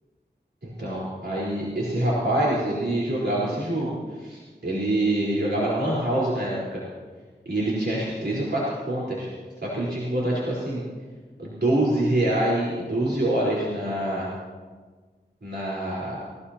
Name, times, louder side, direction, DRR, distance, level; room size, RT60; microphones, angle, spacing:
voice 1, 0.6-6.8 7.5-9.3 9.6-10.8 11.4-14.3 15.4-16.2, right 1 dB, 75° right, -7 dB, 4.1 m, -25 dB
20.0 x 19.0 x 2.9 m, 1.4 s
wide cardioid pair, 65°, 18 cm